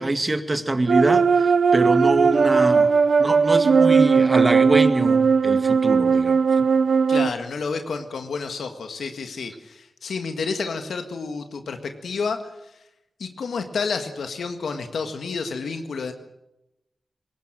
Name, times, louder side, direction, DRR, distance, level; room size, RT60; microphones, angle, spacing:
voice 1, 0.0-2.9 3.2-6.7, right 2 dB, 30° right, 9 dB, 2.0 m, -24 dB
sound 1, 0.9-7.3, right 5 dB, 80° right, 0.8 m, -18 dB
voice 2, 7.1-12.4 13.2-16.1, left 4 dB, 90° left, 6 dB, 1.7 m, -30 dB
20.0 x 18.0 x 9.1 m, 0.90 s
cardioid pair, 55°, 0 cm